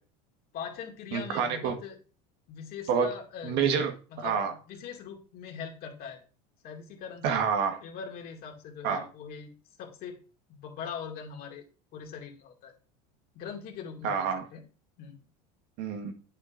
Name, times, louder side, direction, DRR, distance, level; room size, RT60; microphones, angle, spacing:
voice 1, 0.5-2.0 2.5-3.6 4.1-4.4 4.7-6.2 6.6-7.2 7.8-9.5 9.8-10.2 10.5-11.6 11.9-12.7 13.3-14.6 15.0-15.2, left 7 dB, 55° left, 1 dB, 2.3 m, -41 dB
voice 2, 1.1-1.7 2.9-3.1 3.4-3.9 4.2-4.5 7.2-7.8 8.8-9.1 14.0-14.4 15.8-16.1, right 6 dB, 60° right, 6 dB, 1.5 m, -27 dB
8.5 x 6.7 x 2.6 m, 0.37 s
supercardioid pair, 100°, 19 cm